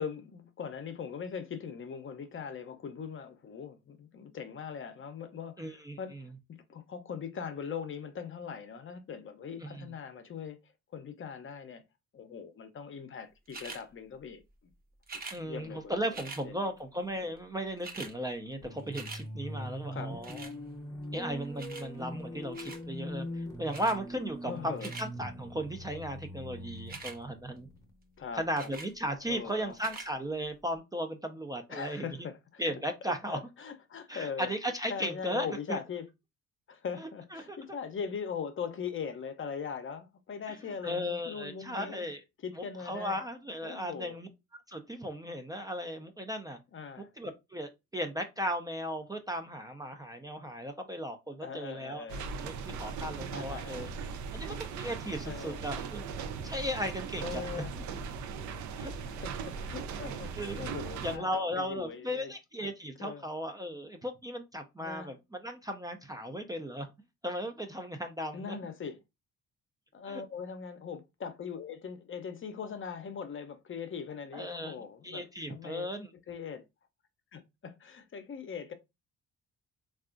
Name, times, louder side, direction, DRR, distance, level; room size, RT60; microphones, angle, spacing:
voice 1, 0.0-6.3 6.7-10.6 10.9-11.8 12.1-14.4 15.4-16.7 19.9-20.1 24.4-24.9 28.2-28.7 29.3-29.8 31.7-32.6 33.0-34.5 34.9-36.1 36.7-42.1 42.4-43.2 43.6-44.2 46.7-47.1 51.4-52.3 53.3-53.9 55.2-55.6 57.2-57.7 59.0-62.3 63.0-63.2 64.8-65.1 68.3-69.0 69.9-75.9 76.3-76.6 77.3-78.7, left 6 dB, 40° left, 0.6 m, -41 dB
voice 2, 5.6-6.0 9.6-9.8 15.3-20.5 21.1-27.7 28.3-32.1 32.6-33.4 34.1-35.8 37.3-37.6 40.5-40.6 40.8-42.2 42.6-44.3 44.7-46.6 47.0-52.1 52.4-53.9 54.3-56.0 56.4-57.6 58.8-58.9 60.4-60.8 61.0-66.9 67.2-68.6 70.1-70.2 74.3-76.1, equal, 15° right, 0.4 m, -36 dB
sound 1, 13.5-13.8 15.0-15.4 16.1-16.4 17.4-17.5 17.7-18.1 18.5-19.2 20.2-20.5 21.6-21.9 22.5-22.8 23.7-24.0 24.6-25.1 26.8-27.2 28.6-28.9 29.7-30.1 30.8-30.9, right 4 dB, 30° right, 0.8 m, -43 dB
sound 2, 18.6-28.5, equal, 10° left, 0.8 m, -42 dB
sound 3, 52.1-61.2, right 5 dB, 70° right, 0.5 m, -39 dB
3.5 x 2.4 x 2.4 m
cardioid pair, 90°, 30 cm